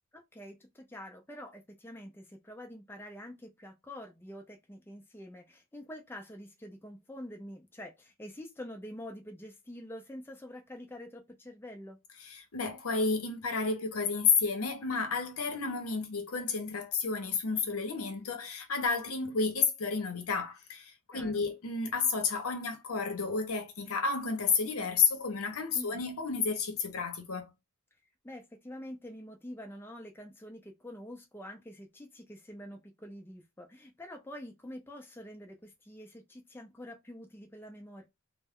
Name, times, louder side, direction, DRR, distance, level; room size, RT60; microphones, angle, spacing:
voice 1, 0.1-12.0 21.1-21.4 25.7-26.0 28.2-38.1, left 1 dB, 10° left, 0.5 m, -46 dB
voice 2, 12.2-27.5, left 5 dB, 75° left, 0.8 m, -31 dB
2.2 x 2.1 x 3.5 m
head